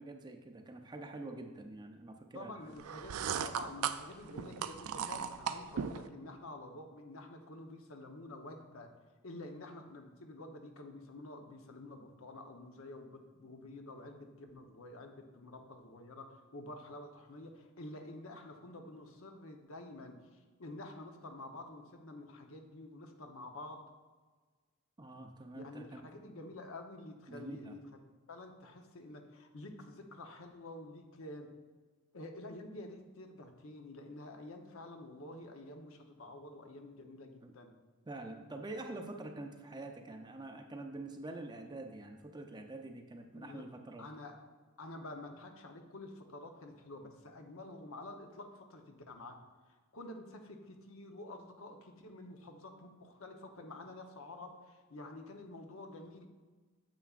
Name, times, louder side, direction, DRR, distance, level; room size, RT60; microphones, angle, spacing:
voice 1, 0.0-2.7 25.0-26.1 27.3-27.7 37.4-37.5 38.1-44.0, right 2 dB, 20° right, 4 dB, 0.5 m, -46 dB
voice 2, 2.3-8.9 9.2-20.2 20.6-23.8 25.5-27.8 28.3-31.5 32.1-37.7 43.3-43.6 44.0-44.4 44.8-49.4 49.9-56.3, left 2 dB, 70° left, 4 dB, 0.8 m, -49 dB
sound 1, 2.8-6.1, right 8 dB, 85° right, 0.4 m, -37 dB
9.1 x 7.0 x 2.4 m, 1.4 s
head